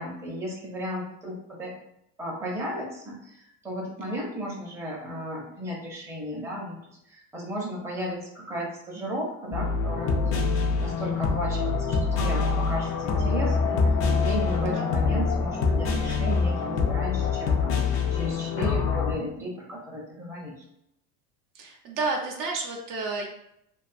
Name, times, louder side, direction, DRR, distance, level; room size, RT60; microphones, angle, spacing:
voice 1, 0.0-1.7 2.2-10.4 10.8-13.8 14.1-20.6, equal, 5° right, -4 dB, 0.6 m, -34 dB
sound 1, 9.5-19.1, left 4 dB, 35° left, 0.4 m, -25 dB
voice 2, 21.5-23.3, right 3 dB, 55° right, 0 dB, 0.6 m, -31 dB
2.4 x 2.3 x 2.5 m, 0.77 s
supercardioid pair, 110°, 39 cm